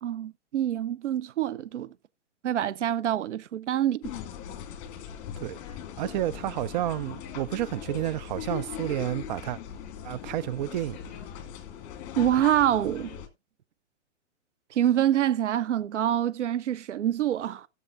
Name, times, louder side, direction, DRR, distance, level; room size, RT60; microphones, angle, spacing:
voice 1, 0.0-1.9 2.4-4.0 12.2-13.2 14.7-17.7, right 11 dB, 70° right, 0.8 m, -26 dB
sound 1, 4.0-13.3, left 9 dB, 35° left, 2.1 m, -40 dB
voice 2, 6.0-9.6 10.0-11.0, right 13 dB, 40° right, 0.5 m, -30 dB
16.0 x 7.0 x 2.5 m
hypercardioid pair, 115°, 37 cm